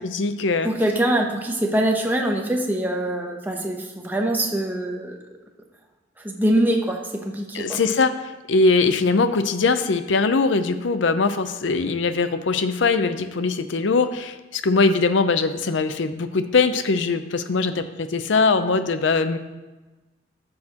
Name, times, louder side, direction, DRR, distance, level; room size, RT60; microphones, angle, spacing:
voice 1, 0.0-0.7 7.5-8.1 8.5-19.4, left 4 dB, 75° left, 10 dB, 0.5 m, -21 dB
voice 2, 0.6-5.2 6.2-7.8, right 1 dB, 10° right, 1 dB, 0.8 m, -23 dB
12.0 x 6.4 x 2.9 m, 1.2 s
head